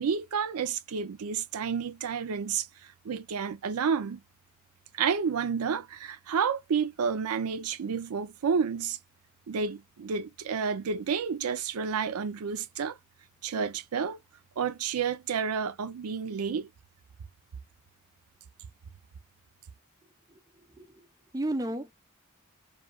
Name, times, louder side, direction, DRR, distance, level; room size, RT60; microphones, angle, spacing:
voice 1, 0.0-4.2 4.9-9.0 9.5-13.0 13.4-14.2 14.6-16.7, right 6 dB, 75° right, 0.4 m, -30 dB
voice 2, 20.7-21.1 21.3-21.9, right 1 dB, 15° right, 0.3 m, -33 dB
2.7 x 2.4 x 2.3 m
head